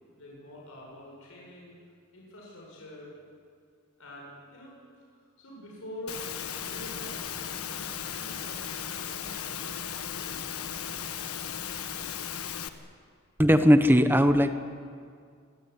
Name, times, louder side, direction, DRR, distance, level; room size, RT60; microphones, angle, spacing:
voice 1, 0.2-1.7 2.1-3.1 4.0-10.8, equal, 70° left, -3 dB, 7.5 m, -46 dB
Engine / Mechanisms, 6.1-12.7, left 8 dB, 85° left, 1.4 m, -36 dB
voice 2, 13.4-14.5, equal, 10° right, 9 dB, 1.0 m, -19 dB
26.0 x 17.5 x 9.7 m, 2.2 s
head